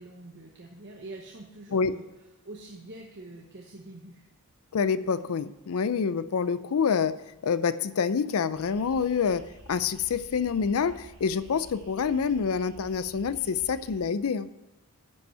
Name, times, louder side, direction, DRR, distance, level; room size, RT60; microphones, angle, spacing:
voice 1, 0.0-2.0 2.4-4.3, right 2 dB, 50° right, 0 dB, 1.0 m, -45 dB
voice 2, 4.7-7.2 7.4-9.4 9.7-14.5, left 6 dB, 75° left, 15 dB, 0.4 m, -27 dB
sound 1, 8.5-14.0, right 1 dB, 75° right, 2.7 m, -51 dB
10.5 x 5.4 x 5.6 m, 1.0 s
head